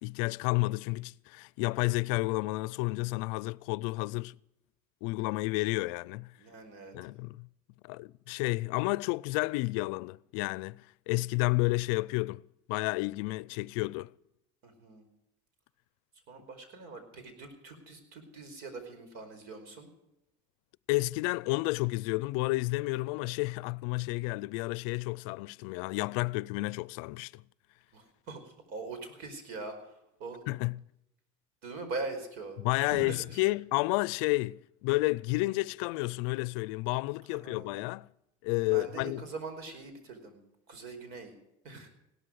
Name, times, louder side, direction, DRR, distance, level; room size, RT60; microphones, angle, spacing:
voice 1, 0.0-4.4 5.0-6.3 6.9-7.5 7.8-12.4 12.7-14.1 20.9-27.4 30.5-30.8 32.6-38.1 38.4-39.2, left 23 dB, 80° left, 0.5 m, -31 dB
voice 2, 6.4-6.9 14.6-15.1 16.3-19.9 27.9-29.8 30.2-30.4 31.6-32.6 32.8-33.4 37.3-37.8 38.7-40.4 40.7-41.3 41.6-41.9, right 3 dB, 70° right, 4.8 m, -42 dB
17.0 x 13.0 x 6.4 m
supercardioid pair, 105°, 17 cm